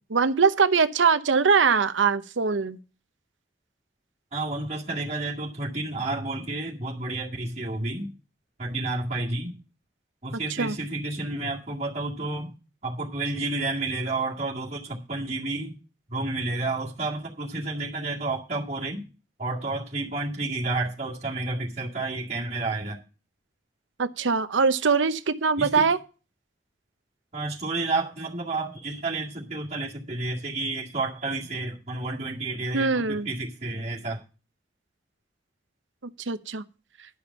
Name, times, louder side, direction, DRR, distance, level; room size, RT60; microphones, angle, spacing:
voice 1, 0.1-2.8 10.6-10.8 24.0-26.0 32.7-33.3 36.3-36.6, right 5 dB, 90° right, 0.8 m, -22 dB
voice 2, 4.3-8.1 8.6-9.5 10.2-12.5 12.8-15.8 16.1-19.0 19.4-23.0 25.6-25.8 27.3-34.2, right 2 dB, 35° right, 2.1 m, -30 dB
11.0 x 5.2 x 8.3 m
head